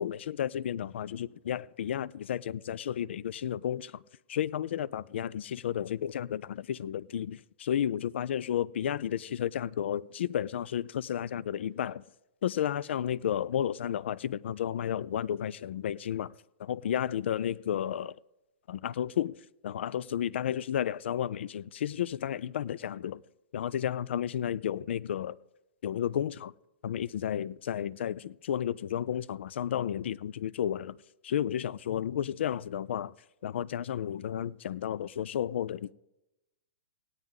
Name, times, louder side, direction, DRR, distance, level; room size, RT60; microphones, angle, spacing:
voice 1, 0.0-4.0 4.3-12.0 12.4-16.3 16.6-18.1 18.7-19.4 19.6-23.2 23.5-25.4 25.8-26.5 26.8-31.0 31.2-33.1 33.4-35.9, left 10 dB, 75° left, 0.3 m, -32 dB
17.0 x 9.5 x 3.7 m
hypercardioid pair, 140°, 6 cm